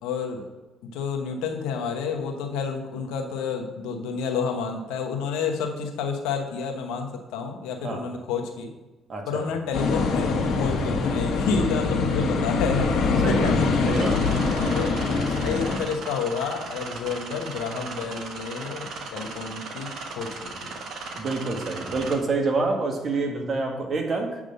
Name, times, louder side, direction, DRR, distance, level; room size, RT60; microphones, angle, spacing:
voice 1, 0.0-0.4 0.8-8.7 9.3-13.6 14.0-14.1 14.7-19.9 20.2-20.3, left 5 dB, 90° left, 3 dB, 1.0 m, -30 dB
voice 2, 9.1-9.5 12.8-12.9 13.2-13.5 13.9-14.2 21.1-24.4, right 3 dB, 45° right, 2 dB, 1.6 m, -27 dB
sound 1, 9.7-15.8, left 4 dB, 65° left, 1.3 m, -24 dB
sound 2, 13.4-22.2, right 3 dB, 70° right, 1.2 m, -37 dB
7.9 x 3.6 x 6.5 m, 1.1 s
supercardioid pair, 75°, 0 cm